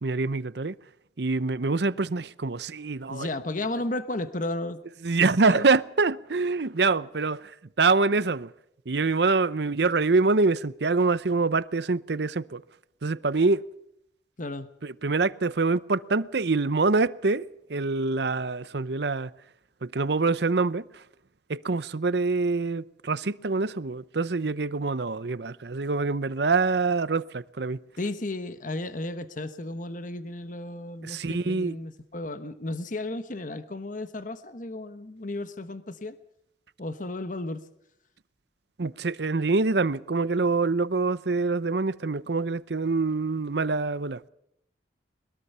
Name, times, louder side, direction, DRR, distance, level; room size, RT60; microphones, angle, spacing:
voice 1, 0.0-0.7 1.2-3.3 5.0-8.5 8.9-12.6 13.0-13.7 14.8-19.3 19.8-21.0 21.5-27.8 31.0-31.8 38.8-44.2, right 3 dB, 65° right, 0.7 m, -25 dB
voice 2, 3.1-4.8 5.5-5.7 14.4-14.7 28.0-36.1 36.8-37.6, left 2 dB, 45° left, 1.1 m, -34 dB
22.0 x 21.5 x 5.6 m
head